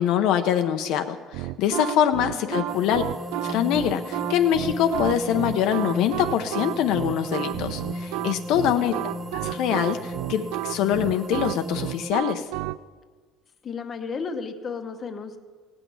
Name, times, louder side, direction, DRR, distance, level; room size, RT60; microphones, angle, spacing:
voice 1, 0.0-3.0 3.4-8.9 9.3-12.4, left 9 dB, 60° left, 7 dB, 0.7 m, -24 dB
sound 1, 1.3-12.8, right 16 dB, 90° right, 0.3 m, -31 dB
voice 2, 2.3-2.9 8.6-9.2 13.6-15.4, left 5 dB, 25° left, 7 dB, 0.9 m, -35 dB
sound 2, 2.7-12.1, right 1 dB, 15° right, 0.6 m, -37 dB
sound 3, 4.4-11.1, equal, ahead, 1.1 m, -46 dB
17.0 x 6.2 x 9.4 m, 1.5 s
cardioid pair, 165°, 0 cm